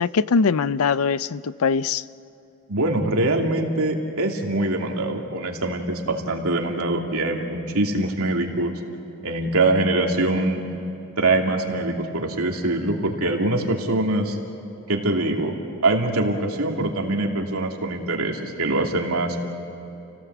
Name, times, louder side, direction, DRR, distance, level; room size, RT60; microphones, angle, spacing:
voice 1, 0.0-2.0, left 5 dB, 80° left, 17 dB, 0.5 m, -21 dB
voice 2, 2.7-8.7 9.2-10.6 11.2-14.4 14.9-15.6 15.8-19.5, right 2 dB, 80° right, 1 dB, 2.7 m, -23 dB
29.0 x 17.5 x 8.0 m, 2.9 s
head